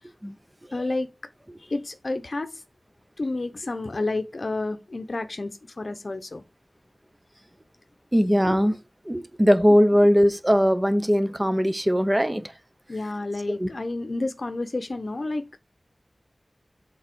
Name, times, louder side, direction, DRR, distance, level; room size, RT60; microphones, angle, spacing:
voice 1, 0.7-1.1 1.6-2.6 3.2-6.4 9.7-9.8 12.9-15.6, left 2 dB, 65° left, 0.7 m, -30 dB
voice 2, 8.1-8.8 9.0-12.5 13.6-13.7, equal, 20° right, 0.9 m, -20 dB
7.2 x 4.0 x 4.5 m
wide cardioid pair, 55°, 0 cm